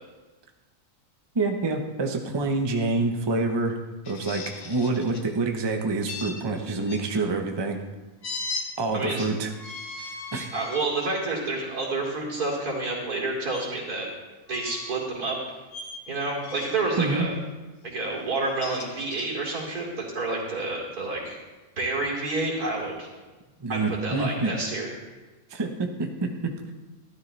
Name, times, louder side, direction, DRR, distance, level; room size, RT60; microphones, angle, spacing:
voice 1, 1.3-3.8 4.1-7.8 8.8-9.5 10.3-10.5 17.0-17.3 23.6-24.5 25.5-26.7, right 3 dB, 20° right, 4 dB, 0.7 m, -27 dB
sound 1, 4.0-5.3 6.1-7.0 8.2-8.7 9.5-10.9 11.5-11.7 13.5-13.6 14.5-15.1 15.7-16.0 16.4-16.9 18.3-19.3, left 3 dB, 60° left, 1.5 m, -37 dB
voice 2, 8.9-9.3 10.0-10.1 10.5-14.1 14.5-15.4 16.1-17.3 17.8-21.4 21.8-23.1 23.7-24.9, right 2 dB, 80° right, -2 dB, 3.3 m, -29 dB
12.5 x 12.5 x 3.3 m, 1.2 s
omnidirectional pair, 1.6 m